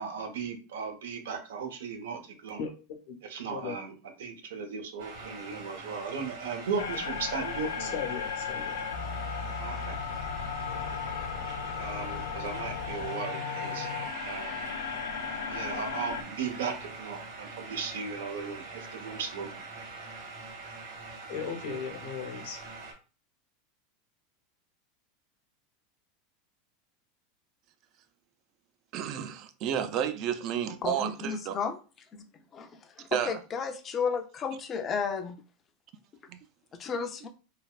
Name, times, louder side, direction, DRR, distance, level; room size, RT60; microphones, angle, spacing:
voice 1, 0.0-2.6 3.2-3.9 4.2-8.0 9.6-10.0 11.7-13.9 14.2-14.6 15.5-19.6, right 5 dB, 85° right, 0.7 m, -36 dB
sound 1, 5.0-22.9, right 3 dB, 70° right, 1.5 m, -43 dB
sound 2, 6.8-16.2, left 7 dB, 90° left, 0.3 m, -35 dB
voice 2, 7.8-8.7 21.3-22.6, left 6 dB, 75° left, 0.9 m, -36 dB
voice 3, 28.9-31.5 33.1-33.4 36.3-36.4, right 9 dB, 50° right, 0.4 m, -31 dB
voice 4, 30.8-31.8 32.1-32.2 32.5-32.7 33.0-35.4 36.8-37.3, left 5 dB, 30° left, 0.5 m, -33 dB
3.3 x 2.3 x 2.3 m
supercardioid pair, 115°, 0 cm